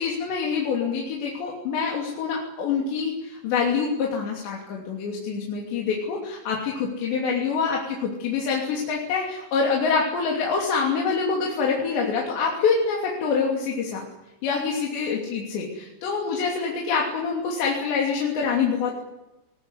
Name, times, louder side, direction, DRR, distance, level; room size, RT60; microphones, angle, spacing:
voice 1, 0.0-14.1 14.4-19.1, left 5 dB, 75° left, -1 dB, 5.2 m, -26 dB
21.5 x 20.0 x 9.9 m, 0.96 s
omnidirectional pair, 5.0 m